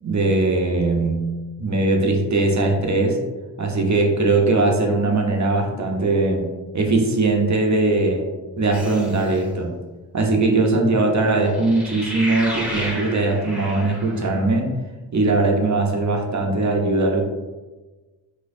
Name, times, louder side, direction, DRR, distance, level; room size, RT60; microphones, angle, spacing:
voice 1, 0.0-1.2 1.6-3.2 3.6-6.5 6.7-8.3 8.6-9.8 10.1-14.7 15.1-17.2, right 2 dB, 35° right, 2 dB, 0.7 m, -20 dB
sound 1, 8.7-9.4 11.5-14.4, equal, ahead, 0.9 m, -32 dB
4.1 x 2.2 x 2.6 m, 1.2 s
cardioid pair, 50°, 47 cm